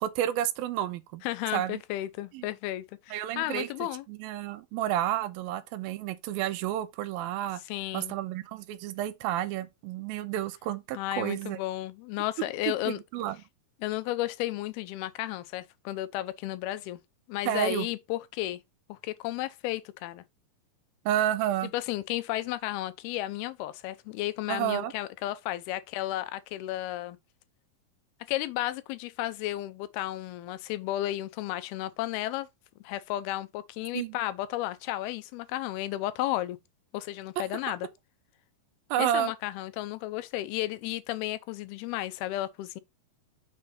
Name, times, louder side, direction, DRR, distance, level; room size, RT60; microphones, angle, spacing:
voice 1, 0.0-1.2 1.5-1.8 2.3-2.5 3.1-3.7 4.1-7.6 7.9-11.6 12.9-13.4 17.5-17.9 21.1-21.7 24.5-24.9 33.9-34.2 38.9-39.3, right 11 dB, 85° right, 2.4 m, -30 dB
voice 2, 1.2-4.0 7.7-8.2 10.9-13.0 13.8-17.0 17.3-18.6 18.9-20.2 21.7-27.2 28.3-32.5 32.8-36.6 36.9-37.9 39.0-42.8, left 15 dB, 90° left, 2.6 m, -33 dB
6.5 x 4.2 x 4.9 m
omnidirectional pair, 4.3 m